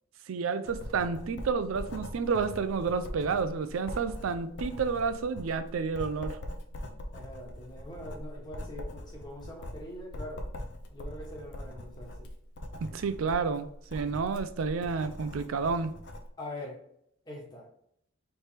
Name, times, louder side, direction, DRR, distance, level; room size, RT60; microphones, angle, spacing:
voice 1, 0.3-6.4 12.8-15.9, right 5 dB, 85° right, 0.4 m, -30 dB
Writing, 0.6-16.3, left 1 dB, 55° left, 0.6 m, -42 dB
voice 2, 7.1-10.5 10.9-12.3 16.4-16.8 17.2-17.7, left 1 dB, 20° left, 1.2 m, -43 dB
3.3 x 3.2 x 4.3 m
head